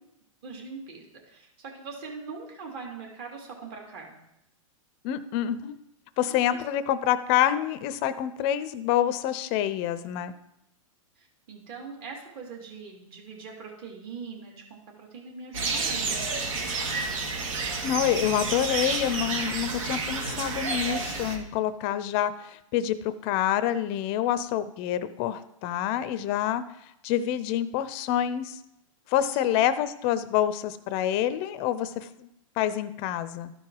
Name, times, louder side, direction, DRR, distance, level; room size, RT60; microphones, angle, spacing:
voice 1, 0.4-4.2 6.3-6.6 11.2-16.9 18.5-18.6 29.2-29.6, right 5 dB, 40° right, 0 dB, 2.5 m, -42 dB
voice 2, 5.0-5.8 6.2-10.3 17.8-26.6 27.0-28.6 29.1-32.3 32.6-33.5, left 11 dB, 35° left, 12 dB, 0.6 m, -27 dB
sound 1, 15.5-21.4, right 4 dB, 70° right, 1.9 m, -30 dB
13.0 x 4.8 x 4.6 m, 0.84 s
hypercardioid pair, 145°, 17 cm